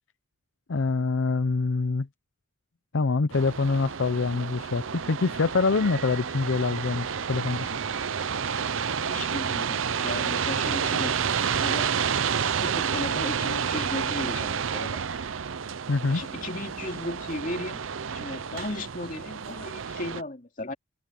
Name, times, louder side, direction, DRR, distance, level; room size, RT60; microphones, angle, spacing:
voice 1, 0.7-2.1 2.9-7.7 15.9-16.2, left 4 dB, 65° left, 0.6 m, -25 dB
sound 1, 3.3-20.2, right 7 dB, 65° right, 0.6 m, -30 dB
voice 2, 9.1-11.9 12.4-15.0 16.1-17.8 18.1-20.7, left 1 dB, 40° left, 2.9 m, -36 dB
head